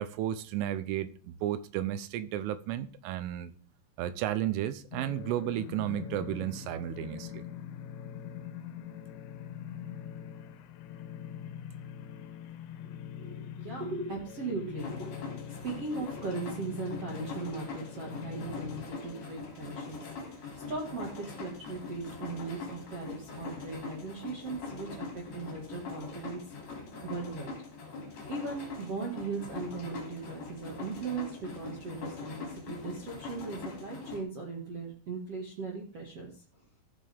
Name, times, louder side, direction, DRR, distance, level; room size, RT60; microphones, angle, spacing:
voice 1, 0.0-3.5 4.0-7.4, right 12 dB, 85° right, 3.2 m, -33 dB
sound 1, 4.9-19.3, left 9 dB, 80° left, 2.8 m, -43 dB
voice 2, 13.2-20.0 20.3-26.4 26.7-27.5 28.3-36.6, right 4 dB, 55° right, 1.7 m, -38 dB
sound 2, 14.8-34.2, left 4 dB, 40° left, 3.5 m, -43 dB
14.0 x 8.5 x 3.5 m
omnidirectional pair, 5.7 m